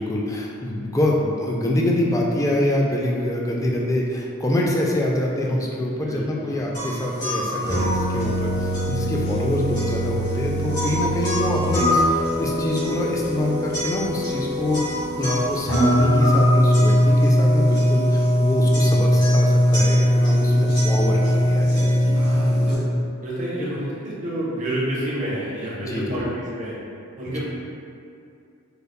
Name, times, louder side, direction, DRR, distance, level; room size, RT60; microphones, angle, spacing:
voice 1, 0.0-14.8 15.2-22.2 25.7-26.2 27.2-27.4, left 1 dB, 15° left, -2 dB, 0.3 m, -25 dB
voice 2, 6.0-6.6 10.7-11.1 15.2-15.5 20.4-21.1 22.1-22.8 23.2-26.8 27.2-27.4, right 1 dB, 35° right, -7 dB, 0.7 m, -30 dB
sound 1, 6.7-22.7, equal, 55° left, 1.4 m, -20 dB
5.0 x 2.2 x 2.2 m, 2.5 s
head